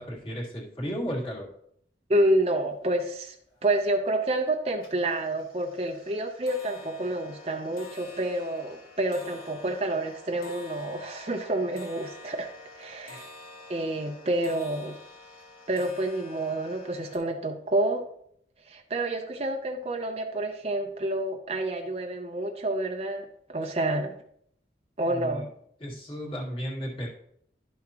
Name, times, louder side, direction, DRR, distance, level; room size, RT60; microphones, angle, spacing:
voice 1, 0.0-1.5 13.1-13.2 25.1-25.4 25.8-27.1, equal, 30° left, -3 dB, 2.1 m, -34 dB
voice 2, 2.1-3.3 3.6-12.5 12.8-13.3 13.7-14.9 15.7-18.1 18.7-24.1 25.0-25.5, right 1 dB, 35° right, 3 dB, 0.6 m, -28 dB
sound 1, 2.8-2.9 3.2-3.8 4.2-4.5 4.8-17.2, left 3 dB, 55° left, 2.0 m, -48 dB
12.0 x 5.9 x 2.9 m, 0.69 s
head